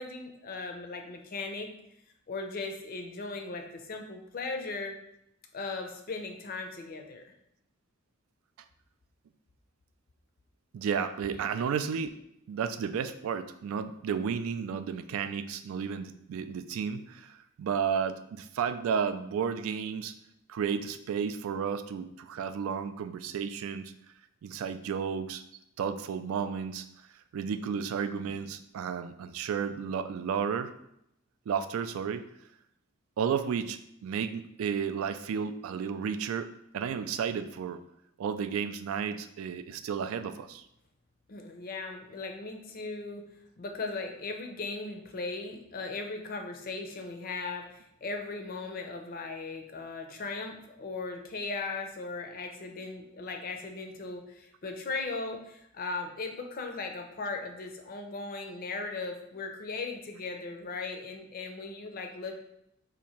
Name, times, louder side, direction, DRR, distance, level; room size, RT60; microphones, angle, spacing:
voice 1, 0.0-1.7 2.3-5.0 5.5-7.2 41.3-43.2 43.6-62.4, left 3 dB, 45° left, 4 dB, 0.5 m, -38 dB
voice 2, 10.7-12.1 12.5-20.1 20.5-23.9 24.4-25.4 25.8-26.9 27.3-30.7 31.5-32.2 33.2-37.8 38.2-40.6, right 7 dB, 80° right, 10 dB, 0.3 m, -32 dB
2.8 x 2.5 x 4.2 m, 0.77 s
head